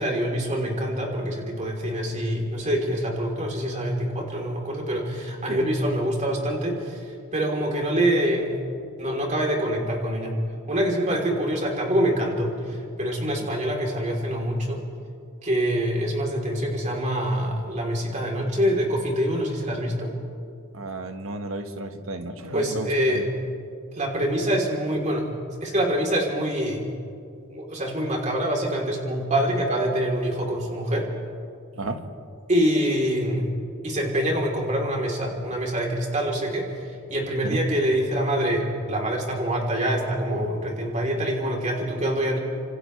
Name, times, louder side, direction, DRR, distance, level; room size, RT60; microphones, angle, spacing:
voice 1, 0.0-7.0 7.3-8.6 9.0-10.4 10.7-14.8 15.4-20.1 22.5-23.3 23.9-25.3 25.6-26.9 27.5-31.1 32.5-33.5 33.8-42.4, equal, 35° right, -1 dB, 3.7 m, -25 dB
voice 2, 20.7-23.3 31.8-32.1 37.4-37.6, right 2 dB, 80° right, 6 dB, 1.5 m, -33 dB
29.0 x 26.5 x 3.4 m, 2.3 s
head